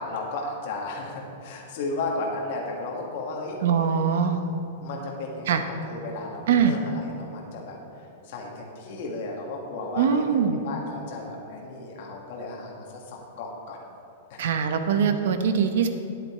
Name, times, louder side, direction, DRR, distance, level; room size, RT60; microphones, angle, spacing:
voice 1, 0.0-3.6 4.2-4.5 4.8-7.8 8.2-13.8 14.3-14.5, left 2 dB, 45° left, -1 dB, 1.7 m, -34 dB
voice 2, 3.6-4.4 5.5-5.6 6.5-6.8 10.0-10.6 14.4-15.9, right 7 dB, 60° right, 8 dB, 0.8 m, -22 dB
10.5 x 8.4 x 4.3 m, 2.8 s
supercardioid pair, 170°, 0 cm